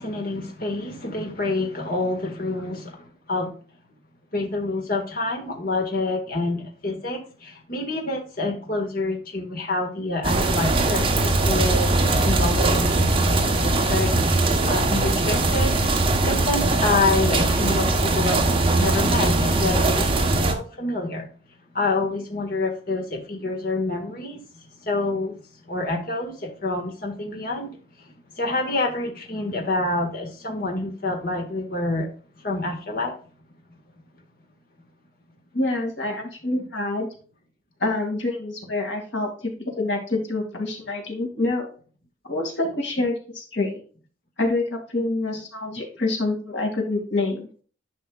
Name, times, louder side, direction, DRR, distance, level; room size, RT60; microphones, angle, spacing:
voice 1, 0.0-3.0 3.3-3.5 4.3-13.2 13.4-15.8 16.2-21.3 21.7-24.4 24.8-25.3 25.7-27.8 28.4-32.1 32.4-33.1, left 2 dB, 50° left, 2 dB, 1.7 m, -27 dB
sound 1, 10.2-20.5, right 2 dB, 30° right, 1.0 m, -21 dB
voice 2, 35.5-37.1 37.8-41.7 42.3-43.8 44.4-47.5, left 2 dB, 80° left, 1 dB, 2.4 m, -26 dB
11.0 x 5.4 x 2.4 m, 0.41 s
head